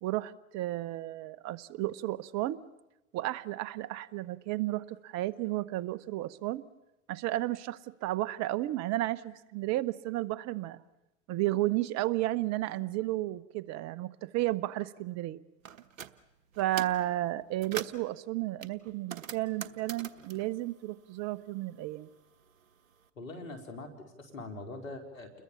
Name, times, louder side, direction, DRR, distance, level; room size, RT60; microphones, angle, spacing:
voice 1, 0.0-2.6 3.1-6.6 7.1-10.8 11.3-15.4 16.6-22.1, right 16 dB, 45° right, 18 dB, 1.1 m, -33 dB
sound 1, 15.6-16.1 16.5-17.0 17.4-18.1 18.6-21.5 21.8-22.9, right 7 dB, 85° right, 1.2 m, -43 dB
voice 2, 23.2-25.3, left 2 dB, 85° left, 6 dB, 4.3 m, -43 dB
30.0 x 21.5 x 7.1 m, 0.98 s
hypercardioid pair, 95°, 39 cm